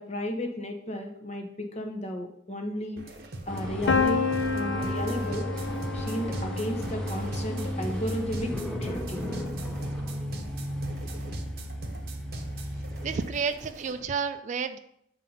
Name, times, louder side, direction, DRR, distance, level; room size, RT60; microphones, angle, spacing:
voice 1, 0.0-3.0 3.5-4.3 4.5-5.5 5.9-8.5 8.8-9.2, equal, 35° left, 3 dB, 0.8 m, -33 dB
sound 1, 3.0-14.1, right 2 dB, 55° right, 0.7 m, -42 dB
sound 2, 3.5-13.3, equal, 5° left, 0.7 m, -34 dB
Piano, 3.9-9.6, left 5 dB, 80° left, 0.6 m, -32 dB
voice 2, 13.0-14.8, right 5 dB, 40° right, 10 dB, 0.3 m, -30 dB
7.3 x 2.7 x 5.5 m, 0.73 s
head